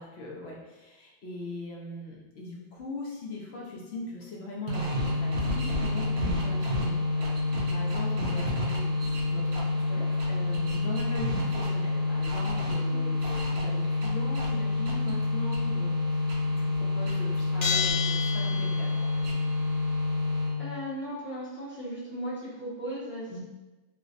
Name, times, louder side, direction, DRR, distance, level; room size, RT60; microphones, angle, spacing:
voice 1, 0.0-16.3 16.6-19.1 23.3-23.4, left 2 dB, 70° left, -3 dB, 0.9 m, -40 dB
sound 1, 4.7-20.8, left 2 dB, 70° right, 0.9 m, -28 dB
Bell, 17.6-19.2, left 7 dB, 90° left, 1.1 m, -30 dB
voice 2, 20.6-23.4, equal, 10° right, -8 dB, 0.8 m, -37 dB
3.2 x 3.0 x 2.5 m, 1.1 s
omnidirectional pair, 1.2 m